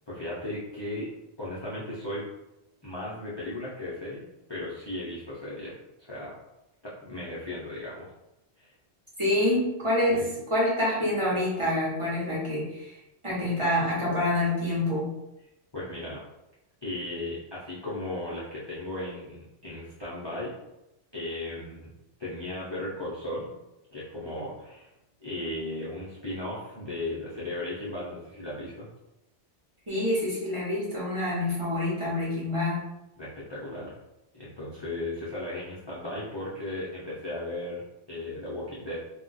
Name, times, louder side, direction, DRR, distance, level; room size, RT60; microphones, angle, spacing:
voice 1, 0.1-1.1 1.4-2.3 2.8-6.3 6.8-8.1 8.6-8.7 10.1-10.3 15.7-16.2 16.8-20.5 21.1-21.9 22.2-23.5 23.9-24.9 25.2-28.9 33.2-33.9 34.3-37.8 38.1-39.0, left 1 dB, 30° left, -8 dB, 0.5 m, -36 dB
voice 2, 9.2-12.9 13.2-15.1 29.9-32.8, left 1 dB, 30° right, -7 dB, 0.8 m, -27 dB
2.3 x 2.2 x 3.9 m, 0.90 s
omnidirectional pair, 1.2 m